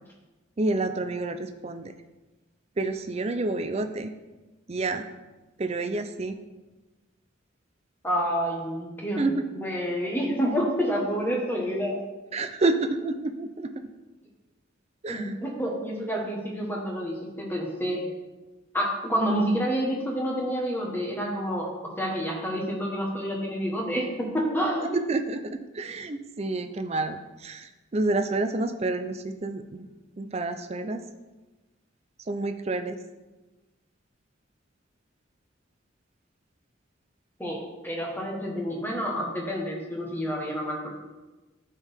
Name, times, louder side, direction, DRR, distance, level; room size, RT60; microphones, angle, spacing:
voice 1, 0.6-1.9 2.8-4.1 4.7-5.0 5.6-6.4 9.2-9.3 12.3-13.9 15.0-15.3 25.1-29.9 30.2-31.0 32.3-33.0, right 2 dB, 30° right, 8 dB, 0.5 m, -29 dB
voice 2, 8.0-12.0 15.1-18.0 18.7-21.7 22.0-24.9 37.4-40.9, equal, 10° left, -1 dB, 1.3 m, -28 dB
11.5 x 4.6 x 3.5 m, 1.2 s
head